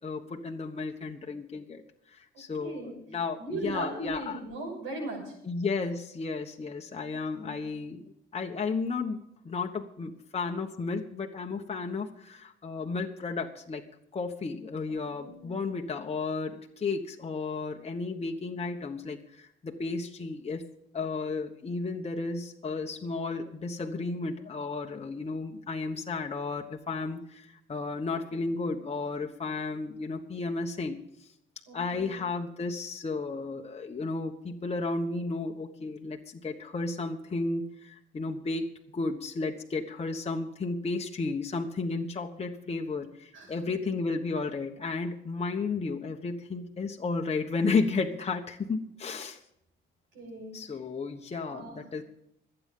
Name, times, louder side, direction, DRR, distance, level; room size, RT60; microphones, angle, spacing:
voice 1, 0.0-1.8 2.1-4.4 5.4-8.0 8.3-9.2 9.4-13.8 14.1-20.6 20.9-31.0 31.7-49.4 50.5-52.0, left 4 dB, 30° left, 2 dB, 1.3 m, -33 dB
voice 2, 2.6-3.0 3.4-5.3 7.0-7.7 14.9-15.7 31.7-32.2 43.3-43.6 50.1-50.8 51.3-51.8, right 2 dB, 85° right, 2 dB, 6.3 m, -39 dB
25.5 x 9.0 x 3.8 m, 0.77 s
cardioid pair, 90°, 20 cm